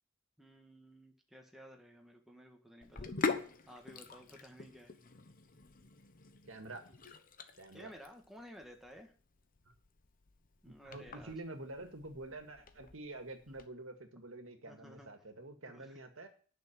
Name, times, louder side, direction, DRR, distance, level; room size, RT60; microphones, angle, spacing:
voice 1, 0.4-5.0 7.7-9.1 10.6-11.3 13.5-13.6 14.7-15.1 15.7-16.0, equal, ahead, 1 dB, 1.8 m, -55 dB
Sink (filling or washing), 2.8-13.6, left 4 dB, 45° left, 1.0 m, -44 dB
voice 2, 6.5-6.9 7.6-7.9 10.7-16.3, right 2 dB, 80° right, 6 dB, 2.0 m, -47 dB
10.5 x 6.2 x 7.5 m, 0.42 s
head